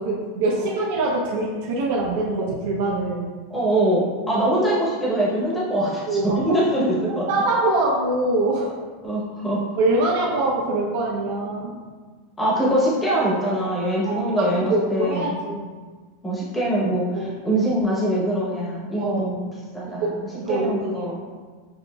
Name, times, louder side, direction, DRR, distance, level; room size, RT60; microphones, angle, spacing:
voice 1, 0.0-3.3 6.1-6.6 7.3-8.7 9.8-11.7 14.0-15.7 19.0-19.3 20.0-20.1 20.4-21.1, right 2 dB, 65° right, -4 dB, 0.7 m, -24 dB
voice 2, 3.5-7.3 9.0-9.6 12.4-15.3 16.2-19.5 19.7-20.1 20.5-21.2, right 1 dB, 10° left, -6 dB, 0.9 m, -23 dB
6.4 x 2.5 x 2.3 m, 1.4 s
supercardioid pair, 165°, 0 cm